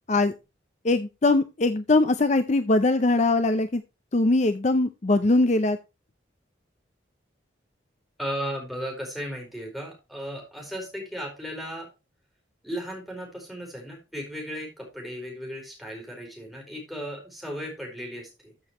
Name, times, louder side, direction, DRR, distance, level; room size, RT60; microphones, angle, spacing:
voice 1, 0.8-3.8 4.1-5.8, left 2 dB, 35° left, 11 dB, 0.5 m, -21 dB
voice 2, 8.2-11.9 12.6-18.5, equal, ahead, 0 dB, 4.3 m, -35 dB
14.0 x 6.2 x 3.0 m, 0.27 s
head